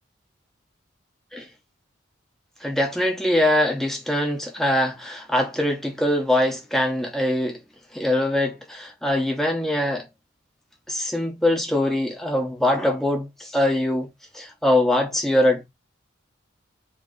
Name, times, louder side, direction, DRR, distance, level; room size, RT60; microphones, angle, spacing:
voice 1, 2.6-7.6 7.9-10.1 10.9-15.7, left 1 dB, ahead, 1.0 m, -23 dB
4.0 x 3.0 x 3.8 m
head